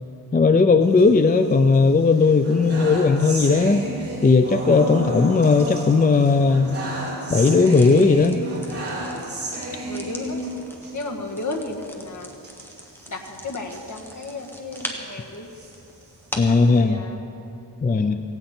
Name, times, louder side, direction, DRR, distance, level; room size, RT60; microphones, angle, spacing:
voice 1, 0.3-3.9 4.2-6.7 7.3-8.4 16.4-17.0 17.8-18.2, left 4 dB, 20° left, 8 dB, 0.4 m, -17 dB
sound 1, 0.8-1.8 2.2-10.9 11.3-11.5 11.7-11.8 12.4-14.9 15.4-16.8, right 1 dB, 30° right, 4.3 m, -33 dB
sound 2, 7.3-16.6, equal, 5° left, 1.4 m, -41 dB
voice 2, 9.8-10.4 10.9-12.3 13.1-15.5 16.5-17.2 17.9-18.2, left 2 dB, 40° left, 2 dB, 1.7 m, -33 dB
17.0 x 17.0 x 4.4 m, 2.7 s
wide cardioid pair, 140°, 44 cm